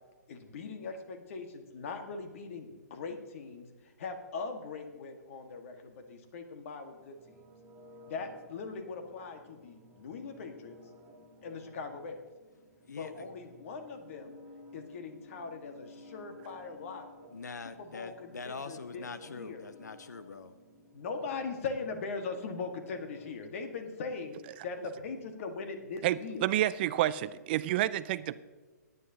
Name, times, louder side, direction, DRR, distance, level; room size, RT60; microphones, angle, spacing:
voice 1, 0.3-3.6 4.0-7.4 8.1-10.8 11.4-12.2 12.9-14.4 14.7-17.1 17.6-19.6 20.9-26.5, left 4 dB, 50° left, 6 dB, 1.7 m, -40 dB
sound 1, 7.2-23.3, left 1 dB, 15° right, 2.6 m, -56 dB
voice 2, 12.8-13.3 17.3-20.5, left 4 dB, 80° left, 12 dB, 0.7 m, -43 dB
voice 3, 26.0-28.4, right 13 dB, 35° right, 16 dB, 0.4 m, -29 dB
18.0 x 9.6 x 2.9 m, 1.4 s
hypercardioid pair, 135°, 9 cm